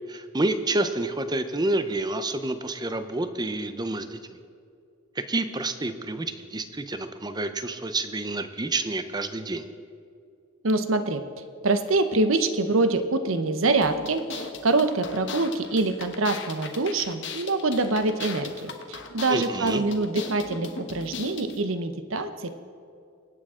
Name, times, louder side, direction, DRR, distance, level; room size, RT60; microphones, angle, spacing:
voice 1, 0.1-4.2 5.2-9.7 19.3-19.8, right 2 dB, 20° right, 9 dB, 0.6 m, -28 dB
voice 2, 10.6-11.2 11.6-22.6, right 2 dB, 75° right, 9 dB, 0.8 m, -25 dB
sound 1, 13.8-21.6, left 5 dB, 65° left, 1.1 m, -39 dB
24.5 x 8.7 x 3.7 m, 2.4 s
head